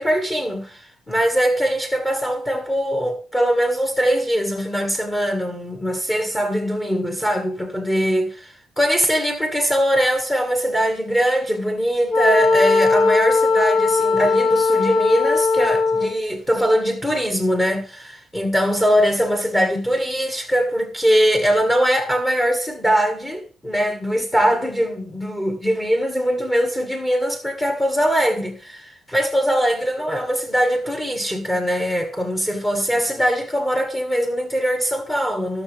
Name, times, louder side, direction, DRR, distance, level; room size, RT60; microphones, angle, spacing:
voice 1, 0.0-35.6, equal, 15° left, 1.7 m, -21 dB
Wind instrument woodwind instrument, 12.1-16.3, left 4 dB, 65° left, 1.3 m, -18 dB
17.5 x 6.1 x 3.4 m
cardioid pair, 90°, 0 cm